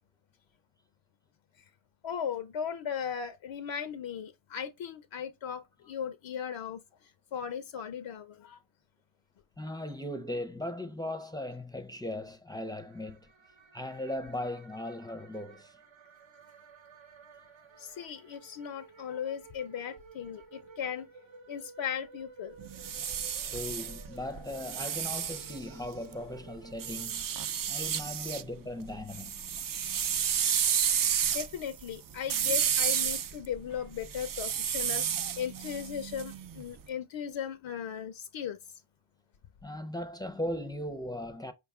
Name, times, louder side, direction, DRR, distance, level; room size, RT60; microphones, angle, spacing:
voice 1, 2.0-8.6 17.8-21.1 21.5-22.6 31.3-38.7, left 8 dB, 70° left, 0.5 m, -37 dB
voice 2, 9.6-13.3 13.7-15.8 23.4-27.2 27.7-29.4 39.6-41.5, left 1 dB, 10° left, 0.5 m, -38 dB
sound 1, 12.5-27.8, right 4 dB, 70° right, 0.8 m, -54 dB
sound 2, 22.6-26.1 26.8-28.4 28.8-36.7, right 8 dB, 45° right, 0.4 m, -31 dB
4.9 x 2.3 x 3.5 m
cardioid pair, 60°, 48 cm